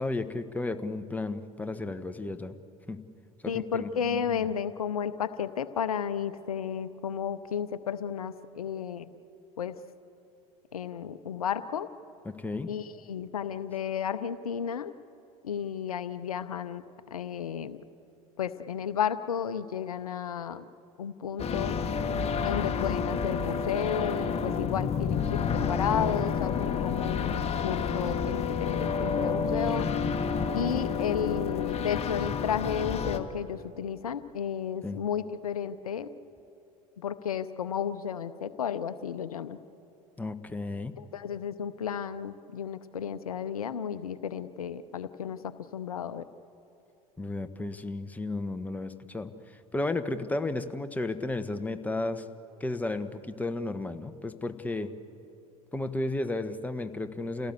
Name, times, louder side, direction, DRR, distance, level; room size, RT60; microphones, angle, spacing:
voice 1, 0.0-2.6 2.9-3.0 3.4-4.5 12.2-12.7 25.2-25.8 34.8-35.0 40.2-40.9 47.2-52.3 52.6-55.0 55.7-57.5, left 2 dB, 10° left, 9 dB, 1.2 m, -33 dB
voice 2, 3.5-9.1 9.6-9.8 10.7-11.9 12.7-14.9 15.4-17.8 18.4-20.7 21.0-21.9 22.4-29.9 30.5-36.1 37.0-39.6 41.0-46.3, left 8 dB, 85° left, 14 dB, 0.7 m, -33 dB
sound 1, 21.4-33.2, left 6 dB, 35° left, 1.5 m, -29 dB
28.0 x 17.0 x 8.1 m, 2.8 s
hypercardioid pair, 70°, 18 cm